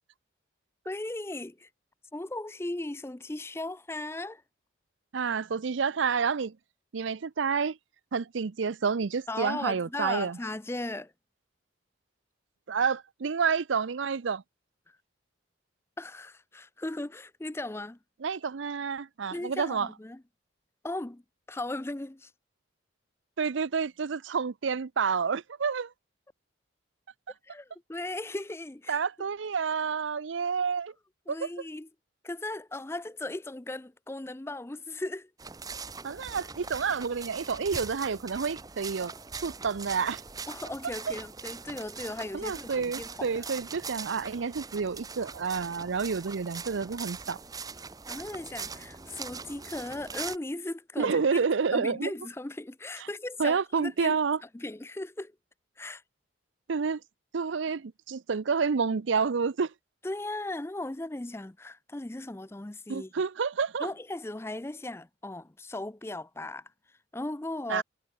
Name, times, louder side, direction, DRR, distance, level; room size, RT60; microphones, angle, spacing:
voice 1, 0.9-1.7 2.1-4.4 9.3-11.1 16.0-18.0 19.3-20.2 20.8-21.2 21.5-22.3 27.4-29.0 31.3-31.9 32.2-35.3 40.5-43.5 48.1-51.4 51.7-54.2 54.5-55.3 55.8-56.0 60.0-63.1 63.8-66.7 67.1-67.8, left 2 dB, 15° left, 0.5 m, -37 dB
voice 2, 5.1-6.6 6.9-7.8 8.1-10.4 12.7-14.4 18.2-19.9 23.4-25.9 28.9-30.9 31.3-31.4 36.0-40.2 42.3-47.4 51.0-52.1 53.4-54.4 56.7-57.0 57.3-59.7 62.9-63.9 67.7-67.8, right 5 dB, 75° right, 0.5 m, -29 dB
sound 1, 35.4-50.4, right 5 dB, 20° right, 0.9 m, -42 dB
head